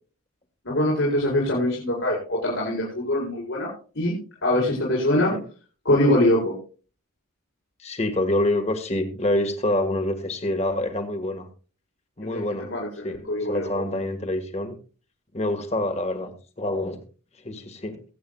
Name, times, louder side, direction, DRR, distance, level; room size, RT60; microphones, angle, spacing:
voice 1, 0.6-3.7 3.9-4.1 4.4-5.3 5.8-6.5 12.3-13.8, left 1 dB, 70° left, -4 dB, 4.9 m, -23 dB
voice 2, 5.1-5.4 7.8-11.5 12.2-12.7 13.0-14.7 15.3-17.0 17.4-18.0, left 1 dB, 30° left, 6 dB, 1.6 m, -26 dB
22.5 x 8.5 x 2.3 m, 0.37 s
head